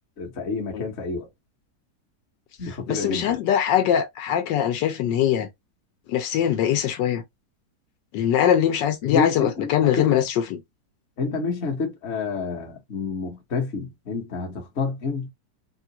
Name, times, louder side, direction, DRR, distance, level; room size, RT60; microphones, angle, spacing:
voice 1, 0.2-1.3 2.6-3.4 9.0-10.3 11.2-15.3, left 4 dB, 45° left, 1.1 m, -29 dB
voice 2, 2.9-5.5 6.1-7.2 8.1-10.6, left 10 dB, 90° left, 1.4 m, -22 dB
3.7 x 2.4 x 2.7 m
omnidirectional pair, 1.9 m